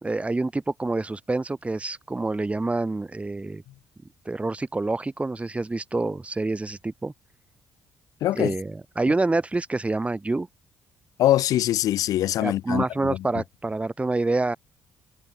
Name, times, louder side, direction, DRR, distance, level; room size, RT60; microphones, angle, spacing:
voice 1, 0.0-3.6 4.3-7.1 8.3-10.5 12.4-14.6, right 2 dB, 20° right, 4.4 m, -27 dB
voice 2, 8.2-8.5 11.2-13.2, left 13 dB, 75° left, 2.8 m, -23 dB
supercardioid pair, 60°, 6 cm